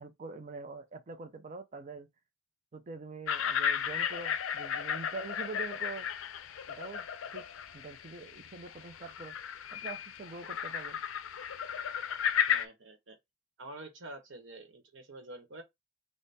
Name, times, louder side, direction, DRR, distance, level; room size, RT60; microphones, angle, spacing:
voice 1, 0.0-2.1 2.7-6.1 6.7-7.1 7.3-7.4 7.7-9.4 9.7-11.0, right 3 dB, 40° right, 0.5 m, -44 dB
sound 1, 3.3-12.7, left 8 dB, 80° left, 0.4 m, -34 dB
voice 2, 12.5-13.2 13.6-15.6, right 2 dB, 65° right, 1.0 m, -47 dB
3.4 x 2.1 x 4.0 m
head